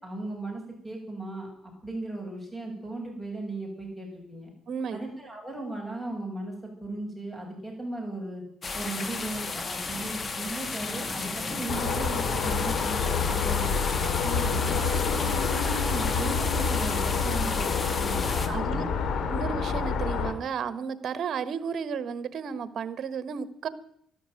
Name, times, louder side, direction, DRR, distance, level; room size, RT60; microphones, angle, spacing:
voice 1, 0.0-1.5 1.8-4.5 4.9-8.4 8.7-14.2 14.7-19.1, right 2 dB, 5° left, 0 dB, 7.9 m, -37 dB
voice 2, 4.7-5.0 14.2-14.7 18.5-18.8 19.3-23.7, right 6 dB, 60° right, 14 dB, 1.3 m, -33 dB
sound 1, 8.6-18.5, left 4 dB, 40° left, 2.0 m, -33 dB
sound 2, 11.7-20.3, left 5 dB, 70° left, 2.1 m, -28 dB
12.5 x 12.5 x 9.2 m, 0.69 s
cardioid pair, 90°, 0 cm